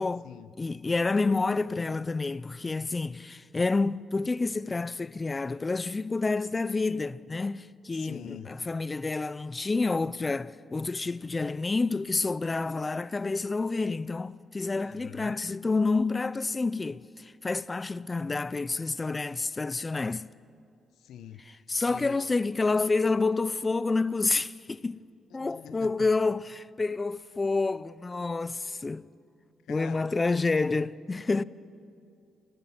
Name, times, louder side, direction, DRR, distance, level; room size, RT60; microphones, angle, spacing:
voice 1, 0.6-20.3 21.4-25.0 25.3-29.1 29.7-31.4, left 3 dB, 25° left, 0.5 m, -29 dB
voice 2, 8.0-8.5 14.8-15.3 21.0-21.4 21.9-22.2 25.4-25.9 29.7-30.1, left 10 dB, 80° left, 0.8 m, -44 dB
27.5 x 18.5 x 6.0 m
cardioid pair, 105°, 0 cm